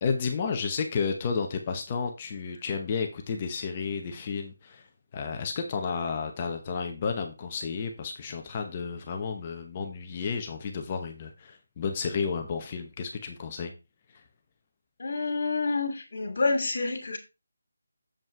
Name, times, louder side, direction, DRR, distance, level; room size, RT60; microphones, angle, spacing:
voice 1, 0.0-4.9 5.1-13.7, left 5 dB, 25° left, 4 dB, 0.8 m, -32 dB
voice 2, 15.0-17.2, left 3 dB, 50° left, 7 dB, 2.5 m, -28 dB
7.6 x 5.3 x 4.6 m, 0.28 s
figure-of-eight pair, 170°, 0 cm